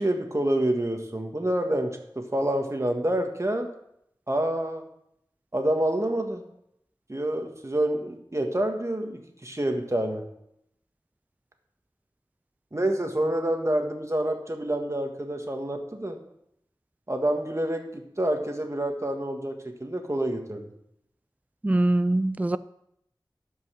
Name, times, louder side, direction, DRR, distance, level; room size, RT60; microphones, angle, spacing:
voice 1, 0.0-3.7 4.3-4.8 5.5-6.4 7.1-10.2 12.7-16.2 17.1-20.7, right 1 dB, 35° right, 4 dB, 1.6 m, -27 dB
voice 2, 21.6-22.6, right 1 dB, 20° right, 15 dB, 0.3 m, -23 dB
12.0 x 5.5 x 6.3 m, 0.77 s
wide cardioid pair, 45°, 8 cm